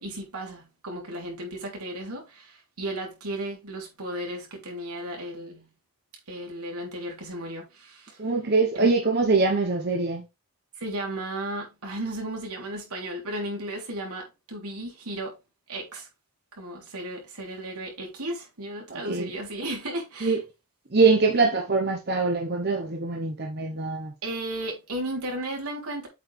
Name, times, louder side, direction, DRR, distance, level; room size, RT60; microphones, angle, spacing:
voice 1, 0.0-5.7 6.3-8.2 8.7-8.9 10.8-15.3 15.7-16.1 16.5-20.4 24.2-26.1, right 1 dB, 85° right, 3.5 m, -34 dB
voice 2, 8.2-10.2 18.9-19.3 20.2-20.4 20.9-24.1, right 3 dB, 45° right, 1.0 m, -23 dB
7.9 x 5.2 x 3.4 m
head